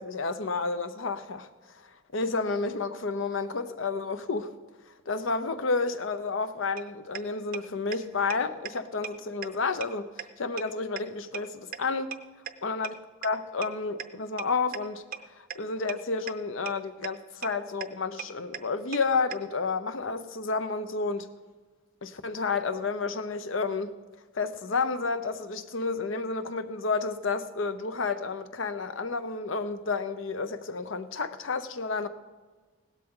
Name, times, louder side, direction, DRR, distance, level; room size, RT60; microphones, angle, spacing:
voice 1, 0.0-4.6 5.1-12.2 12.6-12.9 13.2-21.3 22.0-24.0 24.3-32.1, left 4 dB, 75° left, 0.8 m, -31 dB
sound 1, 6.8-6.9 7.2-7.3 7.5-7.6 7.9-8.0 8.3-8.4 8.7-8.8 9.0-9.1 9.4-9.5 9.8-9.9 10.2-10.3 10.6-10.7 11.0-11.1 11.3-11.4 11.7-11.8 12.1-12.2 12.5-12.6 12.8-12.9 13.2-13.3 13.6-13.7 14.0-14.1 14.4-14.5 14.7-14.8 15.1-15.2 15.5-15.6 15.9-16.0 16.3-16.4 16.7-16.8 17.0-17.1 17.4-17.5 17.8-17.9 18.2-18.3 18.5-18.6 18.9-19.0 19.3-19.4, right 9 dB, 45° right, 0.6 m, -35 dB
16.5 x 12.5 x 3.8 m
head